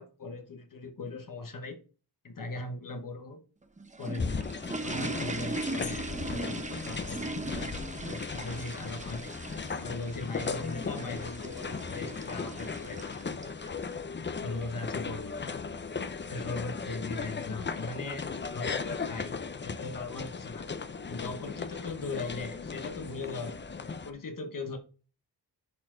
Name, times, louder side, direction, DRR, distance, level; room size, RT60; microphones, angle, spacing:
voice 1, 0.0-1.8 2.2-3.4 4.0-4.5 4.8-7.7 8.1-9.3 9.8-13.2 14.4-15.6 16.2-18.3 18.5-20.7 21.1-24.8, left 3 dB, 50° left, 6 dB, 1.1 m, -39 dB
sound 1, 3.6-13.9, right 2 dB, 20° right, 0.8 m, -39 dB
sound 2, 4.2-24.1, left 5 dB, 25° left, 0.5 m, -37 dB
10.5 x 4.3 x 3.8 m, 0.37 s
wide cardioid pair, 130°, 42 cm